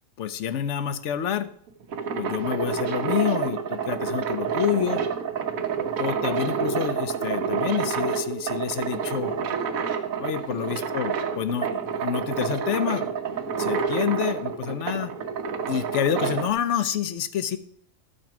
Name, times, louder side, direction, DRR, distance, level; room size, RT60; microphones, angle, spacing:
voice 1, 0.2-1.5 2.2-5.0 6.0-9.3 10.2-13.1 13.6-15.1 15.7-17.6, left 9 dB, 65° left, 13 dB, 1.0 m, -28 dB
sound 1, 1.7-16.5, right 6 dB, 85° right, 1.3 m, -28 dB
11.5 x 4.5 x 5.9 m, 0.63 s
omnidirectional pair, 1.4 m